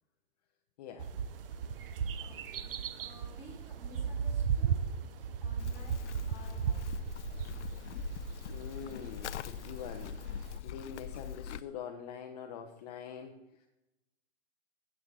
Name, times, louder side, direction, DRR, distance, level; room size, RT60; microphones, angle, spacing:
voice 1, 0.8-1.1 8.5-10.1 10.6-13.7, left 7 dB, 35° left, 4 dB, 0.7 m, -44 dB
sound 1, 1.0-10.6, right 7 dB, 55° right, 0.7 m, -36 dB
voice 2, 1.8-4.8 5.4-7.3, left 1 dB, 5° right, -4 dB, 2.9 m, -55 dB
Livestock farm animals working animals, 5.6-11.6, left 10 dB, 85° left, 0.5 m, -42 dB
9.9 x 7.6 x 4.1 m, 0.99 s
hypercardioid pair, 145°, 34 cm